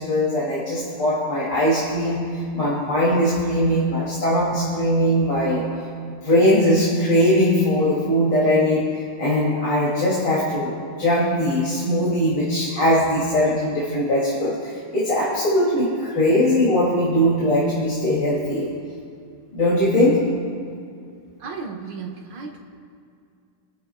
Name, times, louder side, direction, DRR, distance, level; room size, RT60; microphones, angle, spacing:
voice 1, 0.0-5.7 6.2-18.7 19.5-20.3, equal, 60° left, -7 dB, 3.7 m, -20 dB
voice 2, 21.4-22.6, right 5 dB, 60° right, 0 dB, 2.1 m, -34 dB
29.5 x 12.0 x 2.4 m, 2.3 s
omnidirectional pair, 2.2 m